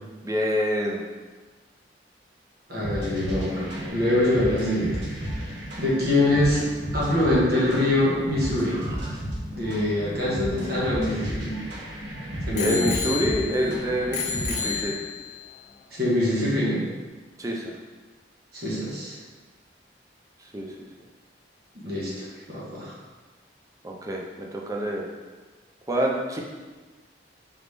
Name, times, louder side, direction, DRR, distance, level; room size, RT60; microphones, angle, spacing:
voice 1, 0.2-1.0 3.2-4.0 8.7-9.2 12.6-15.0 17.4-17.7 20.5-20.7 23.8-25.1 25.9-26.4, equal, 20° right, -1 dB, 0.5 m, -28 dB
voice 2, 2.7-5.0 5.4-6.6 6.9-8.8 9.5-11.6 12.5-12.9 15.9-16.8 18.5-19.2 21.8-22.9, left 1 dB, 60° right, -6 dB, 1.3 m, -24 dB
sound 1, 2.8-14.8, equal, 75° right, 1.1 m, -34 dB
Bicycle bell, 10.3-11.9 12.6-13.7 14.1-15.4 16.1-16.2, left 6 dB, 40° left, 0.4 m, -32 dB
3.9 x 3.5 x 3.3 m, 1.3 s
head